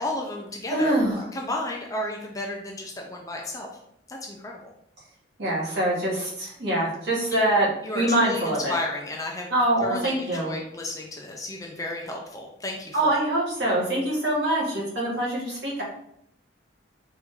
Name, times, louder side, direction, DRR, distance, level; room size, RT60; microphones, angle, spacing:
voice 1, 0.0-1.0 1.3-3.7 4.1-4.6 7.3-7.4 7.8-8.4 8.7-9.5 9.8-13.2, left 2 dB, 15° left, 0 dB, 0.5 m, -33 dB
voice 2, 0.7-1.3 5.4-7.7 7.9-8.8 9.5-10.5 12.9-15.8, right 1 dB, 60° right, -6 dB, 1.6 m, -24 dB
4.5 x 2.7 x 3.6 m, 0.74 s
head